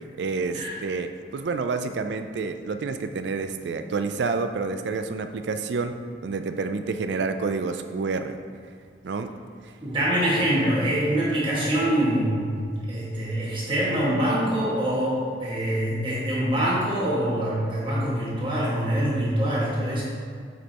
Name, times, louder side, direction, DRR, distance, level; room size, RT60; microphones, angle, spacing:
voice 1, 0.2-6.0 6.2-8.3 9.0-9.3 9.6-9.7, right 4 dB, 75° right, 8 dB, 0.4 m, -28 dB
voice 2, 9.8-20.0, right 1 dB, 30° right, -7 dB, 1.7 m, -24 dB
7.9 x 5.2 x 2.9 m, 2.1 s
head